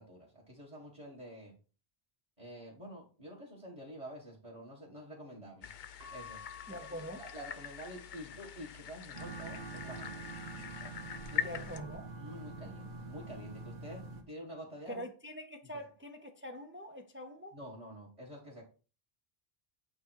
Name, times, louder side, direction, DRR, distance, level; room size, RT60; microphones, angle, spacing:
voice 1, 0.0-1.6 2.4-5.7 6.1-6.4 6.7-10.2 11.3-11.8 12.2-15.0 17.5-18.6, equal, 30° right, 1.9 m, -48 dB
sound 1, 5.6-11.8, left 9 dB, 55° left, 0.6 m, -43 dB
Keyboard (musical) / Bell, 6.0-8.4, left 7 dB, 70° right, 1.3 m, -53 dB
voice 2, 6.7-7.2 11.4-12.0 14.9-17.5, equal, 15° right, 0.7 m, -44 dB
sound 2, 9.1-14.2, right 3 dB, 50° right, 1.5 m, -45 dB
8.6 x 3.5 x 4.6 m
omnidirectional pair, 1.1 m